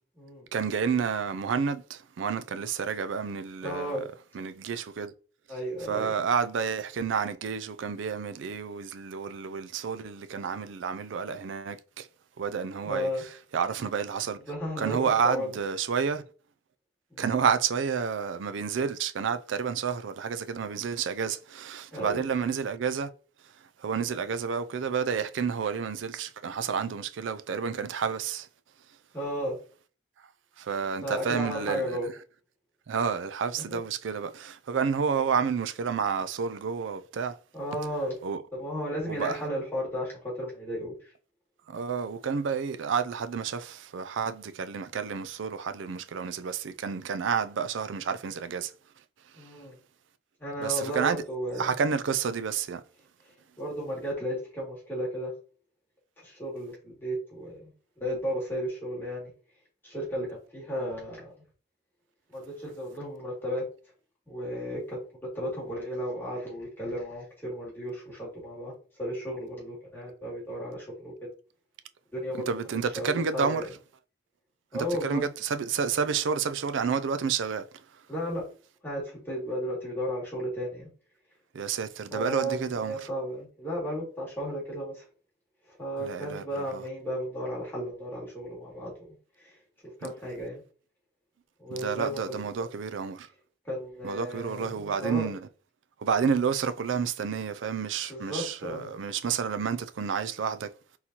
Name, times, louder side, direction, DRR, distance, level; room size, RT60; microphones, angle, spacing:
voice 1, 0.5-4.1 4.3-5.1 5.9-12.1 12.4-13.1 13.5-14.4 14.8-16.2 17.2-23.1 23.8-28.5 30.6-32.0 32.9-37.4 38.2-38.4 39.1-39.4 41.7-48.7 50.6-51.2 51.6-52.8 72.5-73.7 74.7-77.6 81.5-83.0 86.0-86.8 90.0-90.1 91.7-93.3 94.0-95.4 96.0-100.7, right 6 dB, 90° right, 0.4 m, -30 dB
voice 2, 3.6-4.0 5.5-6.1 12.8-13.2 14.4-15.6 17.1-17.4 21.9-22.2 29.1-29.5 31.0-32.1 33.6-33.8 37.5-38.1 38.6-40.9 49.4-49.7 50.4-51.7 53.6-55.3 56.2-57.7 58.0-59.3 59.8-61.3 62.3-63.6 64.3-65.0 65.3-68.7 69.0-71.1 72.1-72.5 72.8-73.7 74.7-75.2 78.1-78.4 78.8-80.9 82.1-85.1 85.7-89.1 89.4-89.5 90.0-90.6 91.6-92.4 93.6-95.3 98.1-98.9, equal, 10° left, 2.3 m, -34 dB
4.3 x 3.9 x 2.9 m
head